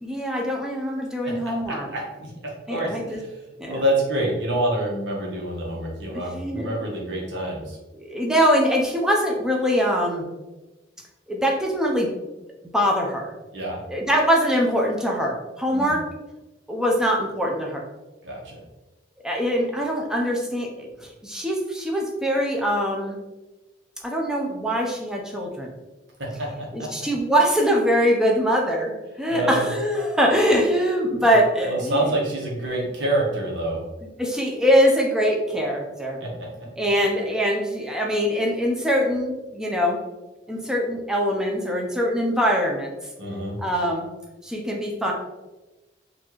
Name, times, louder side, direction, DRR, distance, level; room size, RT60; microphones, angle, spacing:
voice 1, 0.0-1.9 2.7-3.2 3.6-3.8 6.3-6.8 7.9-10.3 11.3-12.1 12.7-13.3 13.9-16.1 16.7-17.8 19.2-23.2 24.0-25.7 26.7-32.1 34.0-36.2 36.8-40.0 40.5-43.0 43.6-44.1 44.4-45.1, equal, 5° right, -1 dB, 0.5 m, -23 dB
voice 2, 1.7-2.3 2.7-3.3 3.7-7.8 13.5-13.8 15.7-15.9 18.2-18.6 26.4-26.7 29.3-29.7 31.1-31.2 31.7-33.8 36.2-36.3 43.2-43.6, right 1 dB, 80° right, -2 dB, 1.1 m, -26 dB
4.2 x 2.6 x 3.0 m, 1.1 s
head